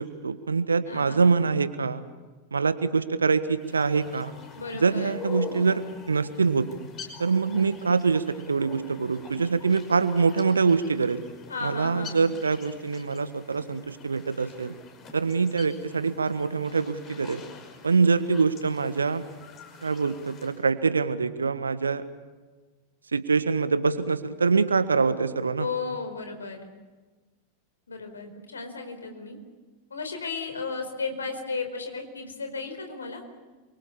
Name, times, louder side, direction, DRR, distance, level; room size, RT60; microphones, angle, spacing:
voice 1, 0.0-2.0 2.5-4.3 4.7-6.7 7.2-11.2 11.6-14.7 15.1-17.4 17.8-19.2 19.8-22.0 23.1-25.7, right 4 dB, 75° right, 12 dB, 1.6 m, -24 dB
voice 2, 0.9-1.4 4.5-5.2 11.5-12.3 25.6-26.7 27.9-29.4 29.9-33.2, left 4 dB, 75° left, 6 dB, 4.5 m, -34 dB
sound 1, 3.6-20.6, left 6 dB, 30° left, 5.6 m, -45 dB
28.5 x 24.0 x 7.2 m, 1.3 s
figure-of-eight pair, 90°, 0 cm